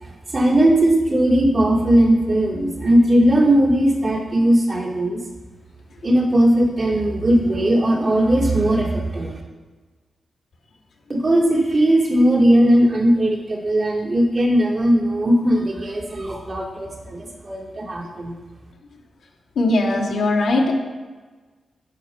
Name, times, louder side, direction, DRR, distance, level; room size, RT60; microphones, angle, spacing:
voice 1, 0.0-5.2 6.0-9.4 11.1-18.3, right 1 dB, 55° right, -4 dB, 2.9 m, -18 dB
voice 2, 19.6-20.7, left 2 dB, 90° left, -5 dB, 2.3 m, -19 dB
13.0 x 5.2 x 5.7 m, 1.4 s
cardioid pair, 45°, 0 cm